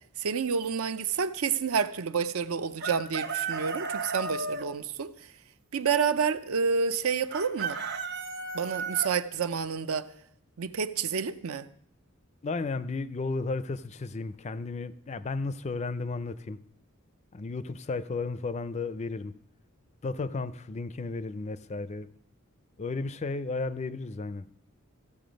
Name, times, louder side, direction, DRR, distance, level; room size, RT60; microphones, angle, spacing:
voice 1, 0.2-5.1 5.7-7.8 8.5-10.1 10.6-11.7, right 6 dB, 75° right, 0.6 m, -29 dB
Chicken rooster, 2.8-4.6 7.3-9.1, right 4 dB, 50° right, 0.9 m, -33 dB
voice 2, 12.4-16.6 17.3-19.4 20.0-22.1 22.8-24.5, left 3 dB, 30° left, 0.4 m, -33 dB
14.5 x 6.9 x 5.2 m
head